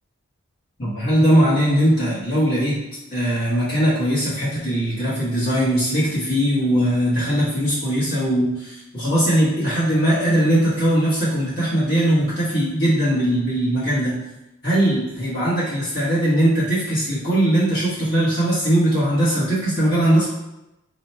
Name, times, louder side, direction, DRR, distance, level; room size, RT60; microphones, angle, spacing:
voice 1, 0.8-2.8 3.1-14.2 14.6-20.3, right 1 dB, 50° left, -9 dB, 1.5 m, -20 dB
4.8 x 3.0 x 2.2 m, 0.91 s
head